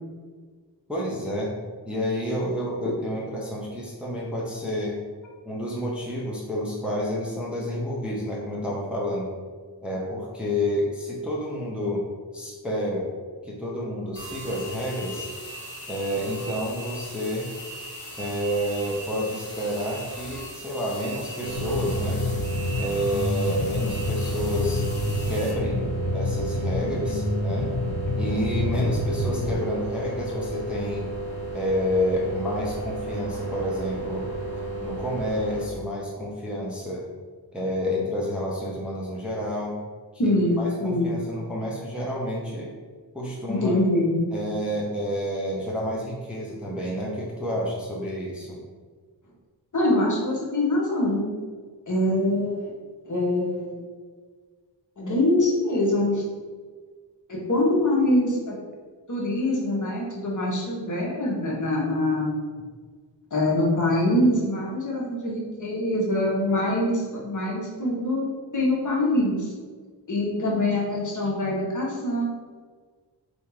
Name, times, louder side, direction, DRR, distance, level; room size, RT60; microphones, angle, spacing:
voice 1, 0.9-1.5 1.9-5.0 5.5-9.3 9.8-12.0 12.3-13.1 13.4-15.3 15.9-17.5 18.2-22.2 22.8-24.8 25.2-25.9 26.1-27.7 28.2-31.1 31.5-34.3 34.8-37.0 37.5-39.7 40.2-42.7 43.1-43.8 44.3-48.6, equal, ahead, -4 dB, 0.7 m, -29 dB
sound 1, 14.1-25.5, equal, 25° left, 1.5 m, -39 dB
sound 2, 21.4-35.7, right 2 dB, 70° right, 1.1 m, -33 dB
sound 3, 21.5-29.5, left 1 dB, 85° left, 0.9 m, -28 dB
voice 2, 40.2-41.2 43.5-44.2 49.7-51.3 51.9-52.7 53.0-53.8 55.0-56.2 57.3-58.6 59.1-62.4 63.3-68.3 68.5-69.5 70.1-72.3, left 1 dB, 45° left, -3 dB, 1.1 m, -24 dB
3.6 x 2.7 x 4.6 m, 1.5 s
wide cardioid pair, 100°, 44 cm